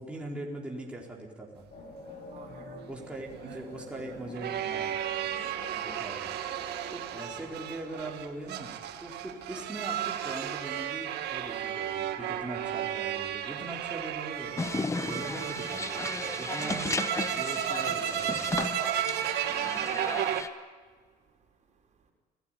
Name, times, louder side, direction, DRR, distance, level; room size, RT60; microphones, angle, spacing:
voice 1, 0.0-1.6 2.9-4.9 5.7-6.3 6.9-16.9 17.3-18.5, right 2 dB, 5° right, -3 dB, 4.5 m, -41 dB
sound 1, 1.7-16.4, left 2 dB, 45° left, 5.8 m, -51 dB
voice 2, 2.3-2.9 20.8-22.1, right 2 dB, 45° right, 1 dB, 5.2 m, -55 dB
sound 2, 2.7-20.4, right 11 dB, 80° right, 2.0 m, -34 dB
sound 3, 14.6-20.5, left 3 dB, 15° left, 1.0 m, -35 dB
28.5 x 17.5 x 9.3 m, 1.5 s
cardioid pair, 110°, 17 cm